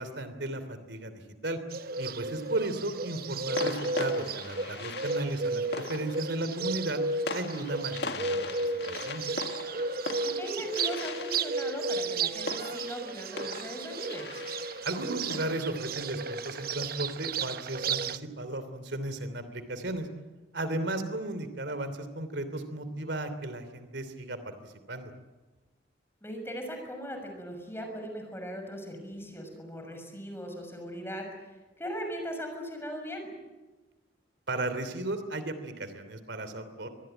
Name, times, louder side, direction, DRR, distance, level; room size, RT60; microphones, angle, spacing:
voice 1, 0.0-1.6 2.0-7.0 7.3-9.2 14.8-20.1 20.5-25.1 34.5-36.9, right 2 dB, 75° right, 11 dB, 3.0 m, -35 dB
Bird, 1.7-18.2, right 4 dB, 55° right, 0.9 m, -34 dB
sound 1, 2.3-2.6 3.6-17.0, left 3 dB, 65° left, 1.8 m, -41 dB
voice 2, 10.2-14.3 26.2-33.3, equal, 15° left, 4 dB, 6.4 m, -39 dB
25.0 x 20.5 x 9.1 m, 1.2 s
head